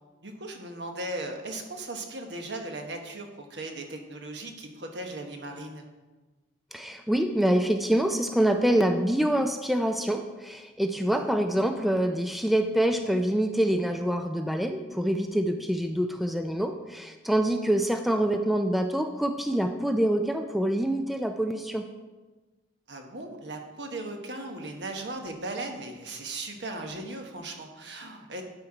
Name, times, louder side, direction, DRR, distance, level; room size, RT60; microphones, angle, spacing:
voice 1, 0.2-5.9 11.0-11.3 22.9-28.4, right 2 dB, 70° right, 3 dB, 1.1 m, -37 dB
voice 2, 6.7-21.9, right 1 dB, ahead, 6 dB, 0.3 m, -26 dB
11.5 x 4.5 x 4.9 m, 1.2 s
head